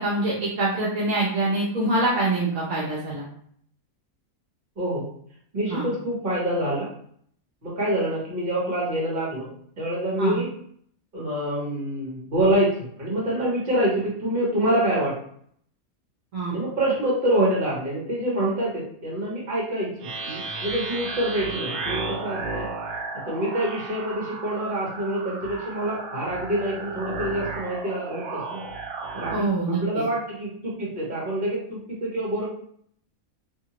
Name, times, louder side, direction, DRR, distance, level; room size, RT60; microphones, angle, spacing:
voice 1, 0.0-3.2 5.7-5.9 10.2-10.4 16.3-16.6 29.3-29.8, right 2 dB, 65° right, -6 dB, 1.1 m, -25 dB
voice 2, 5.5-6.9 7.6-9.5 9.8-10.5 11.1-15.1 16.5-22.7 23.2-28.6 29.1-29.5 29.8-32.5, right 1 dB, 40° right, -6 dB, 1.4 m, -26 dB
sound 1, 20.0-29.5, right 3 dB, 90° right, 1.0 m, -34 dB
2.8 x 2.5 x 2.9 m, 0.63 s
omnidirectional pair, 1.5 m